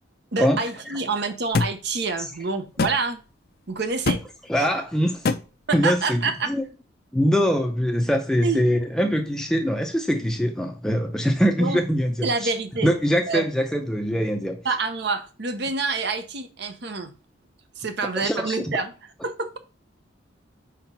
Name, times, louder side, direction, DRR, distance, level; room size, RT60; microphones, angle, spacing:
voice 1, 0.3-3.2 3.7-4.2 4.6-4.7 5.7-6.5 8.4-8.6 11.6-11.8 12.2-12.9 13.3-13.5 14.6-17.1 17.8-18.9 19.2-19.6, right 4 dB, 60° right, 0.9 m, -27 dB
sound 1, 1.5-1.7 2.8-3.0 4.1-4.2 5.3-5.4, left 4 dB, 55° left, 0.5 m, -22 dB
voice 2, 4.5-5.3 5.7-6.2 6.5-6.6 7.1-12.5 12.8-14.6 18.2-18.7, equal, 5° left, 0.6 m, -23 dB
5.0 x 4.3 x 5.4 m
head